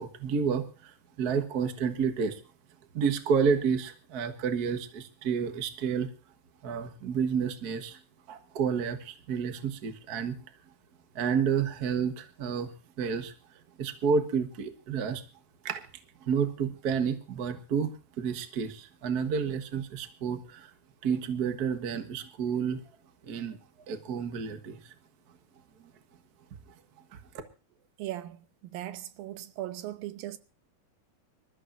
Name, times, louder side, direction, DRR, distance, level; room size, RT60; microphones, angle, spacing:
voice 1, 0.0-2.4 2.9-6.1 6.6-8.0 8.3-10.4 11.1-12.7 13.0-13.3 13.8-15.2 15.6-15.8 16.2-20.7 21.0-22.8 23.2-23.6 23.9-24.9, right 6 dB, 70° right, 0.8 m, -30 dB
voice 2, 28.0-30.4, right 14 dB, 90° right, 2.6 m, -38 dB
26.0 x 13.5 x 2.6 m
omnidirectional pair, 4.1 m